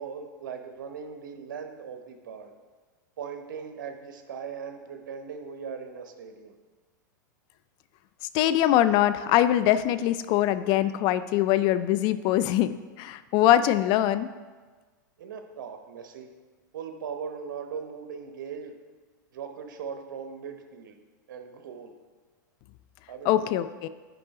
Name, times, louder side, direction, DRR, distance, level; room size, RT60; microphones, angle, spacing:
voice 1, 0.0-2.5 3.2-6.6 15.2-16.3 16.7-18.7 19.3-21.0 21.3-21.9 23.1-23.6, right 6 dB, 80° right, 6 dB, 0.9 m, -39 dB
voice 2, 8.3-14.3 23.3-23.9, left 12 dB, 45° left, 13 dB, 0.4 m, -23 dB
9.7 x 3.6 x 4.8 m, 1.4 s
hypercardioid pair, 125°, 10 cm